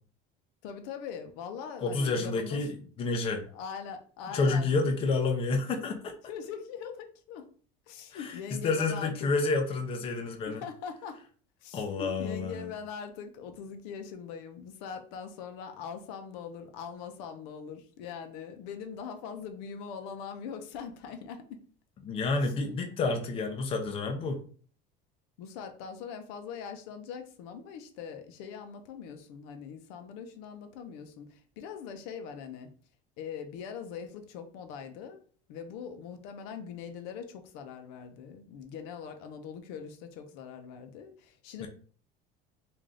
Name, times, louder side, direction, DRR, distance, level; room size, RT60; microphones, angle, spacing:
voice 1, 0.6-2.7 3.5-4.7 6.3-7.5 7.9-9.3 10.5-11.2 11.6-21.6 22.4-22.6 25.4-32.7 33.2-35.2 35.5-41.7, left 7 dB, 85° left, 7 dB, 0.7 m, -42 dB
voice 2, 1.8-3.4 4.3-6.1 8.1-10.6 11.7-12.7 22.0-24.4 41.6-41.7, left 3 dB, 25° left, 4 dB, 0.5 m, -29 dB
3.3 x 2.6 x 3.7 m, 0.43 s
cardioid pair, 165°, 20 cm